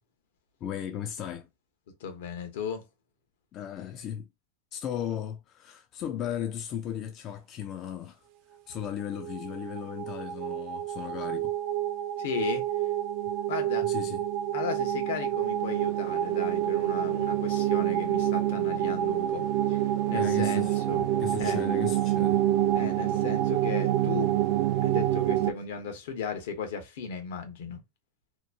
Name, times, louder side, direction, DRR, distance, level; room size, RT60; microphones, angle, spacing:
voice 1, 0.6-1.5 3.5-4.3 4.7-8.2 8.7-11.5 13.8-14.2 20.1-20.7 21.2-22.4, left 10 dB, 35° left, 0.4 m, -36 dB
voice 2, 2.0-2.9 12.2-12.6 13.5-13.9 14.5-19.8 20.1-21.1 21.4-21.6 22.7-24.3 24.8-27.8, left 6 dB, 75° left, 0.9 m, -36 dB
sound 1, 9.1-25.5, right 12 dB, 50° right, 0.4 m, -27 dB
2.9 x 2.1 x 2.4 m
supercardioid pair, 145°, 0 cm